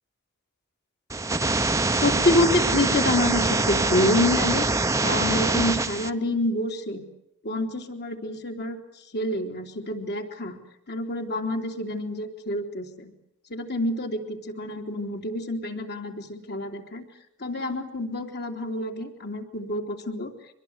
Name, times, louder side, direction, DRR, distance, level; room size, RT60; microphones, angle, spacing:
sound 1, 1.1-6.1, right 2 dB, 15° right, 0.9 m, -24 dB
voice 1, 1.9-4.7 5.0-7.0 7.4-8.8 9.1-10.6 10.9-13.1 13.5-17.1 17.4-20.3, left 1 dB, 50° left, 4 dB, 3.3 m, -27 dB
25.0 x 21.0 x 8.1 m, 0.83 s
head